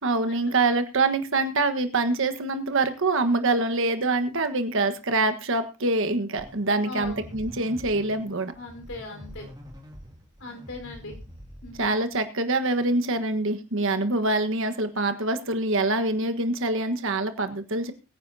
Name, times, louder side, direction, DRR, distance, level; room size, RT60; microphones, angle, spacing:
voice 1, 0.0-8.5 11.8-17.9, right 2 dB, 60° right, 9 dB, 1.4 m, -25 dB
sound 1, 6.4-12.2, equal, 20° right, 2.5 m, -45 dB
voice 2, 6.8-7.3 8.5-9.5 10.4-11.2 11.6-11.9, left 2 dB, 65° left, 3 dB, 4.6 m, -39 dB
22.0 x 10.0 x 2.8 m, 0.31 s
head